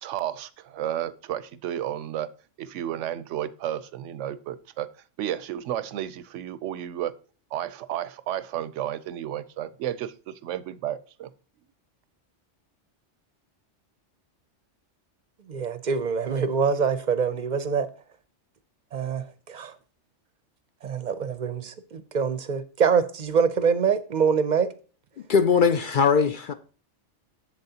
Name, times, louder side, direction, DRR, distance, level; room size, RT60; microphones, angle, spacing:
voice 1, 0.0-2.3 2.6-4.9 5.2-7.1 7.5-11.3, right 11 dB, 90° right, 0.9 m, -32 dB
voice 2, 15.5-17.9 18.9-19.8 20.8-24.7, right 6 dB, 50° right, 0.6 m, -25 dB
voice 3, 25.3-26.5, left 6 dB, 60° left, 0.6 m, -20 dB
7.8 x 7.3 x 2.8 m
omnidirectional pair, 1.2 m